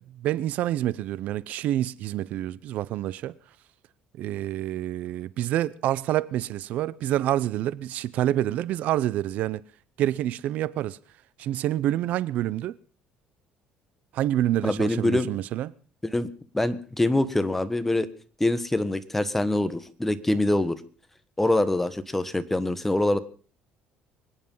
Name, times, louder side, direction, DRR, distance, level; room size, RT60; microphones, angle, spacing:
voice 1, 0.0-3.3 4.2-9.6 10.0-11.0 11.4-12.8 14.1-15.7, right 13 dB, 65° right, 0.7 m, -27 dB
voice 2, 14.6-15.3 16.0-16.3 16.5-18.1 18.4-20.8 21.4-23.2, left 1 dB, 10° left, 1.3 m, -24 dB
24.5 x 10.0 x 5.6 m
cardioid pair, 130°, 3 cm